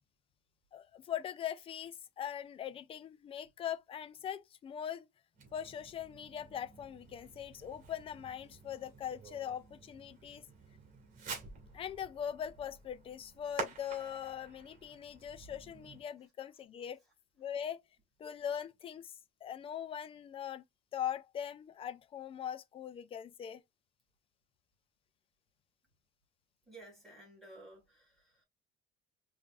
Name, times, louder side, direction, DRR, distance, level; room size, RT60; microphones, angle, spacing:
voice 1, 0.7-5.1 5.5-10.5 11.7-17.0 17.4-17.8 18.2-20.6 20.9-23.6, left 9 dB, 25° left, 0.4 m, -41 dB
Fireworks, 5.3-16.0, right 5 dB, 40° right, 2.2 m, -49 dB
voice 2, 26.7-28.4, right 2 dB, ahead, 3.1 m, -54 dB
5.1 x 3.4 x 2.4 m
cardioid pair, 170°, 21 cm